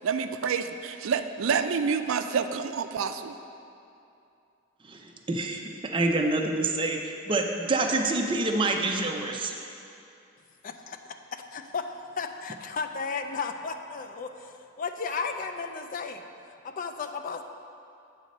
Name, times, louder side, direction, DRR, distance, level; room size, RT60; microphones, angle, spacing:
voice 1, 0.0-3.4, right 6 dB, 75° right, 9 dB, 0.4 m, -28 dB
voice 2, 4.8-9.5, right 2 dB, 25° right, 2 dB, 0.5 m, -27 dB
voice 3, 10.6-11.0 11.3-11.8 12.2-16.2 16.8-17.4, left 5 dB, 40° left, 6 dB, 0.4 m, -34 dB
8.1 x 4.1 x 6.4 m, 2.7 s
head